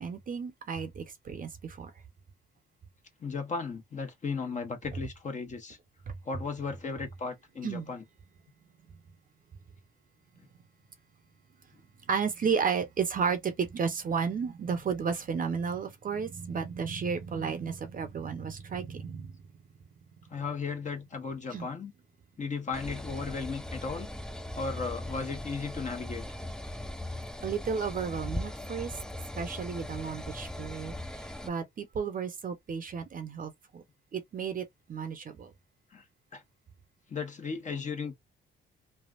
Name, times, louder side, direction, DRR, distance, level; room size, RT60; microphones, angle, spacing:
voice 1, 0.0-1.9 7.6-7.9 12.1-19.3 21.5-21.7 27.4-28.9 29.4-31.0 31.4-33.8 34.1-35.5, right 6 dB, 45° right, 0.8 m, -33 dB
voice 2, 3.2-5.8 6.2-8.0 20.3-21.9 22.4-24.1 24.6-26.3 35.9-36.0 36.3-36.4 37.1-38.1, left 5 dB, 40° left, 1.1 m, -35 dB
sound 1, 22.7-31.5, left 1 dB, 5° left, 0.4 m, -39 dB
3.3 x 2.4 x 2.4 m
cardioid pair, 90°, 20 cm